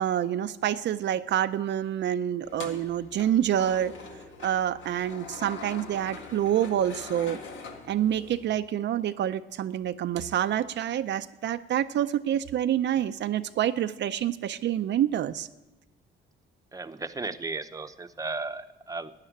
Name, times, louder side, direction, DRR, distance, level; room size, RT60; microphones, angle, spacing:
voice 1, 0.0-3.9 4.4-7.4 7.9-15.5, right 10 dB, 65° right, 9 dB, 0.5 m, -27 dB
sound 1, 2.4-8.5, left 4 dB, 75° left, 1.8 m, -43 dB
voice 2, 16.7-19.1, right 3 dB, 15° right, 8 dB, 0.8 m, -35 dB
12.5 x 9.8 x 9.2 m, 1.1 s
cardioid pair, 90°, 20 cm